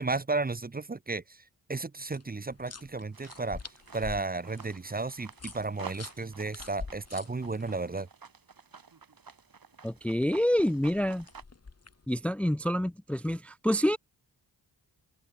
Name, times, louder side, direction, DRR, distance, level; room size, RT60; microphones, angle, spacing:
voice 1, 0.0-1.4 1.7-3.6 3.9-8.1, right 3 dB, 20° right, 0.9 m, -33 dB
sound 1, 2.1-8.0 10.6-12.1, left 4 dB, 35° left, 2.8 m, -46 dB
sound 2, 3.1-11.4, right 5 dB, 55° right, 4.9 m, -50 dB
voice 2, 9.8-11.3 12.1-14.0, equal, 5° left, 0.6 m, -27 dB
open air
cardioid pair, 60°, 41 cm